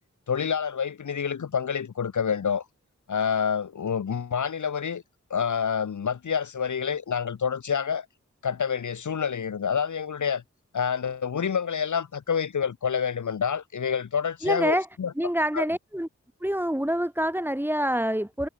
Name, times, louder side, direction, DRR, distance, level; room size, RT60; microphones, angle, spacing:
voice 1, 0.3-2.6 3.1-5.0 5.3-8.1 8.4-10.4 10.7-15.1 15.5-15.7, left 7 dB, 85° left, 1.7 m, -27 dB
voice 2, 14.4-14.9 15.2-16.1 16.4-18.5, equal, 5° right, 6.6 m, -26 dB
cardioid pair, 40°, 29 cm